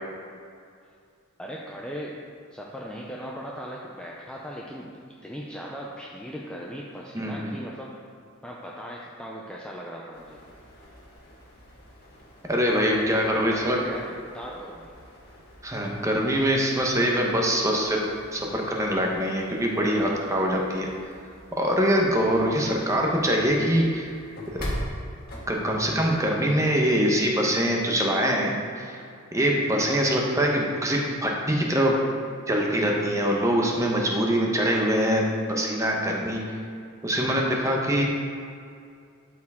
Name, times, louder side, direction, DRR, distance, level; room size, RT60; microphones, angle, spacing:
voice 1, 1.4-2.1 2.5-4.9 5.2-7.9 8.4-10.4 13.2-14.9, equal, 5° left, -3 dB, 0.5 m, -38 dB
voice 2, 7.1-7.6 12.5-13.8 15.6-18.0 18.3-20.9 21.6-24.1 24.5-24.6 25.5-29.0 29.3-32.0 32.5-36.4 37.0-38.0, equal, 15° right, -1 dB, 0.9 m, -24 dB
sound 1, 10.1-26.4, equal, 45° left, 1.7 m, -43 dB
12.5 x 4.6 x 3.6 m, 2.3 s
head